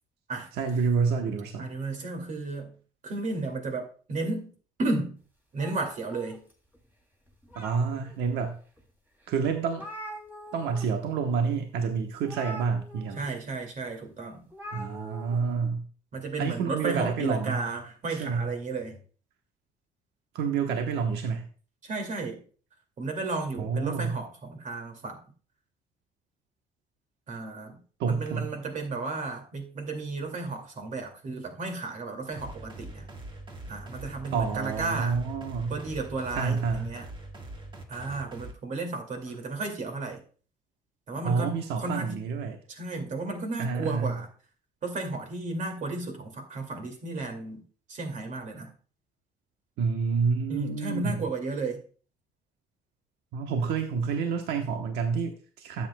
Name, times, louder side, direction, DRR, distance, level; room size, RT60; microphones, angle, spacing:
voice 1, 0.6-1.7 7.5-8.6 9.3-9.8 10.5-13.2 14.7-15.9 16.4-17.6 18.1-18.5 20.3-21.5 23.6-24.2 28.0-28.5 34.3-35.7 36.3-36.9 41.2-42.6 43.6-44.1 49.8-51.2 53.3-55.9, right 5 dB, 80° right, 4 dB, 1.1 m, -28 dB
voice 2, 1.6-2.8 3.0-4.5 4.8-5.2 5.5-6.5 13.2-14.5 16.1-19.0 21.8-22.4 23.0-25.2 27.3-33.1 33.7-35.2 35.7-37.1 37.9-40.2 41.1-42.2 42.7-44.3 44.8-48.7 50.5-51.8, right 3 dB, 45° right, 4 dB, 2.4 m, -33 dB
sound 1, 5.6-6.8 7.3-8.2 8.8-8.9 9.2-9.3 9.5-10.9 11.1-11.4 12.2-13.3 14.5-15.3, equal, 10° right, 2.9 m, -43 dB
sound 2, 32.3-38.5, right 2 dB, 30° right, 1.7 m, -43 dB
12.0 x 8.3 x 2.3 m, 0.40 s
cardioid pair, 110°, 17 cm